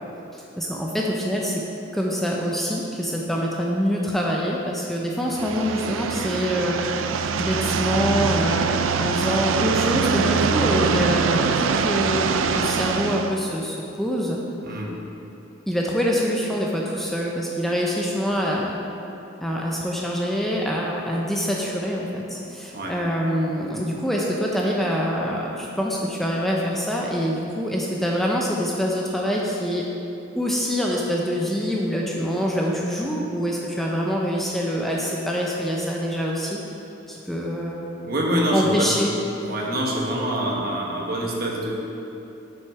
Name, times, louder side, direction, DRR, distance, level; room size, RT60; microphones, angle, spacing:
voice 1, 0.3-1.6 1.9-6.8 7.4-14.4 15.7-18.8 19.4-29.9 30.3-36.6 37.1-37.9 38.5-39.1, equal, ahead, -3 dB, 0.5 m, -25 dB
sound 1, 5.3-13.3, right 5 dB, 85° right, 0.4 m, -23 dB
voice 2, 14.6-15.0 22.7-23.0 38.0-39.0 39.4-41.8, equal, 50° right, -2 dB, 1.2 m, -25 dB
6.3 x 6.1 x 4.7 m, 2.9 s
head